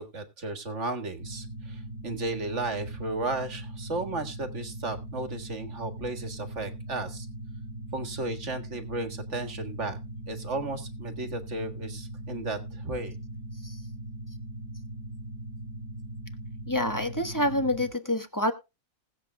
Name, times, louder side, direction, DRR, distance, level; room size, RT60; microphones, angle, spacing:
voice 1, 0.0-7.3 7.9-10.0 10.3-13.2, right 2 dB, 50° right, 9 dB, 1.9 m, -34 dB
sound 1, 1.2-17.9, right 1 dB, 80° left, 5.6 m, -40 dB
voice 2, 16.7-18.5, left 1 dB, 15° left, 8 dB, 1.2 m, -27 dB
20.0 x 8.0 x 2.2 m, 0.27 s
omnidirectional pair, 1.6 m